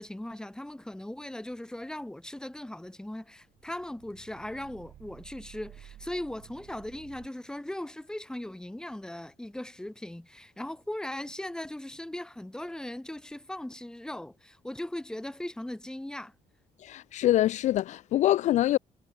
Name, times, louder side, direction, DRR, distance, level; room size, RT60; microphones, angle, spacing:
voice 1, 0.0-16.3, left 1 dB, 5° left, 1.7 m, -39 dB
sound 1, 3.4-7.3, right 12 dB, 75° right, 4.7 m, -52 dB
voice 2, 16.8-18.8, left 13 dB, 70° left, 0.4 m, -24 dB
cardioid pair, 120°, 13 cm